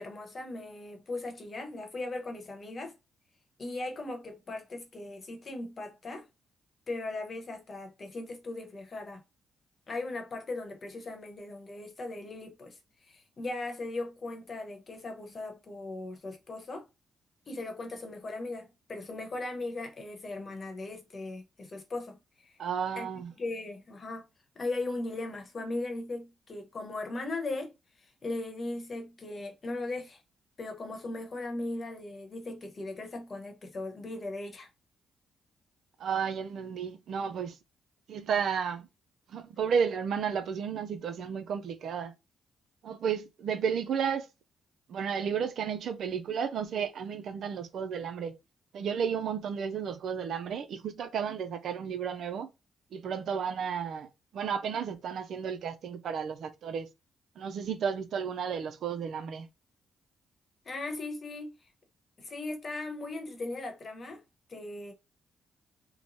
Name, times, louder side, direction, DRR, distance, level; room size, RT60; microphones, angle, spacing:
voice 1, 0.0-2.9 3.6-6.2 6.9-9.2 9.9-12.8 13.1-16.9 17.5-22.5 22.9-23.1 23.4-24.3 24.5-27.7 28.2-30.2 30.6-34.7 60.6-61.5 62.2-64.2 64.5-64.9, left 2 dB, 40° left, 0.9 m, -38 dB
voice 2, 22.6-23.3 36.0-37.5 38.1-38.9 39.3-42.1 42.8-44.3 44.9-48.3 48.7-52.5 52.9-54.1 54.3-56.9 57.4-59.5, right 7 dB, 70° right, 0.4 m, -32 dB
3.0 x 2.1 x 2.6 m
cardioid pair, 75°, 0 cm